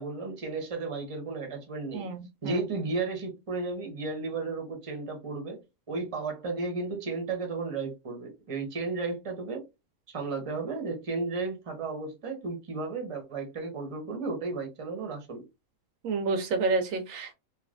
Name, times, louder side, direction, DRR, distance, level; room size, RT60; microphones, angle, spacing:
voice 1, 0.0-2.1 2.4-5.6 5.9-9.7 10.1-15.4, right 3 dB, 30° right, 0.8 m, -34 dB
voice 2, 1.9-2.6 16.0-17.3, right 3 dB, 75° right, 0.9 m, -29 dB
3.2 x 2.7 x 2.5 m
omnidirectional pair, 1.4 m